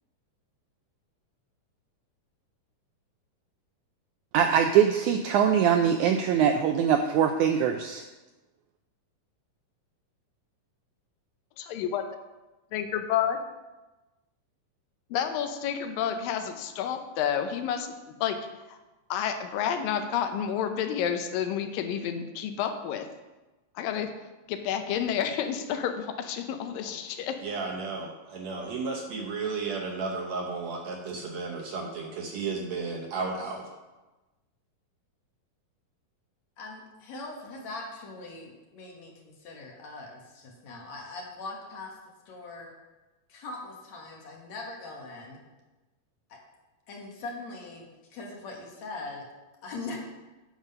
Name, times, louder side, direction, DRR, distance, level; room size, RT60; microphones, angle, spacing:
voice 1, 4.3-8.0, right 8 dB, 85° right, 5 dB, 1.7 m, -22 dB
voice 2, 11.6-12.0 12.7-13.4 15.1-18.4 18.7-18.8 19.1-23.1 23.8-24.1 24.5-27.4, left 8 dB, 85° left, 7 dB, 2.5 m, -30 dB
voice 3, 27.4-33.6, right 4 dB, 70° right, 0 dB, 1.8 m, -33 dB
voice 4, 36.6-41.9 42.3-42.7 43.3-45.4 46.9-49.2 49.6-50.0, left 3 dB, 60° left, -1 dB, 2.4 m, -41 dB
9.4 x 6.2 x 5.4 m, 1.1 s
omnidirectional pair, 4.0 m